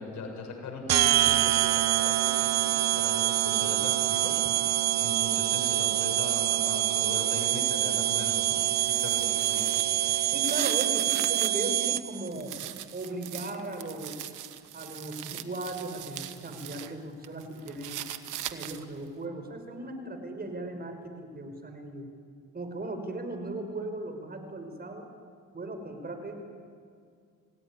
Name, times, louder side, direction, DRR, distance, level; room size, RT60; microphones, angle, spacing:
voice 1, 0.0-4.4 5.0-9.9, left 4 dB, 70° left, 1 dB, 7.1 m, -40 dB
sound 1, 0.9-12.3, right 13 dB, 60° right, 0.7 m, -26 dB
sound 2, 8.5-11.7 12.1-16.9 17.2-19.0, right 13 dB, 90° right, 1.3 m, -40 dB
voice 2, 10.3-12.5 12.9-14.2 14.7-18.1 18.5-22.1 22.5-25.1 25.5-26.4, right 2 dB, 30° right, 6 dB, 5.2 m, -37 dB
27.0 x 17.0 x 9.9 m, 2.2 s
cardioid pair, 90°, 30 cm